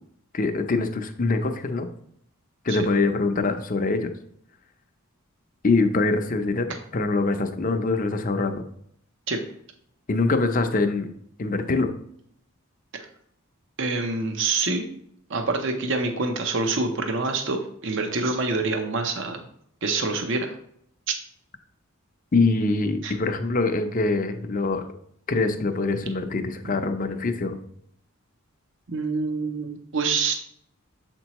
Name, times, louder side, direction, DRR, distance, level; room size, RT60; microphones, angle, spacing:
voice 1, 0.3-1.9 2.6-4.1 5.6-8.6 10.1-11.1 11.4-11.9 22.3-24.9 25.3-27.6, left 3 dB, 40° left, 7 dB, 0.6 m, -24 dB
voice 2, 13.8-14.8 15.3-19.5 19.8-20.5 21.1-21.2 23.0-23.1 28.9-30.3, right 3 dB, 55° right, 5 dB, 0.7 m, -26 dB
7.1 x 4.4 x 3.0 m, 0.68 s
head